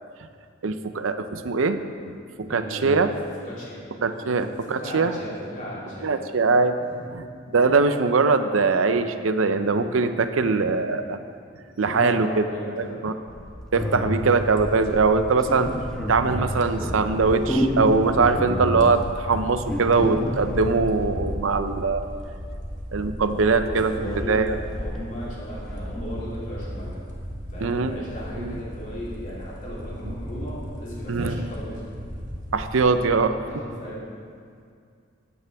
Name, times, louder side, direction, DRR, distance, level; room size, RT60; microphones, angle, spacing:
voice 1, 0.6-3.1 4.0-5.2 6.0-6.7 7.1-7.2 7.5-11.2 11.8-12.4 12.8-13.1 13.7-15.7 16.1-22.1 22.9-24.6 27.6-27.9 28.4-28.5 31.1-31.4 32.5-33.3, right 4 dB, 90° right, 9 dB, 0.6 m, -22 dB
voice 2, 2.5-3.1 3.4-3.8 4.2-4.3 4.7-6.1 6.8-7.0 11.7-13.0 23.6-24.4 24.7-27.0 27.5-31.9 33.1-34.0, equal, 40° left, -7 dB, 3.2 m, -36 dB
sound 1, 13.3-26.2, equal, 5° left, 1.0 m, -31 dB
sound 2, 14.1-33.1, equal, 40° right, 1.5 m, -38 dB
13.5 x 9.6 x 3.5 m, 2.2 s
head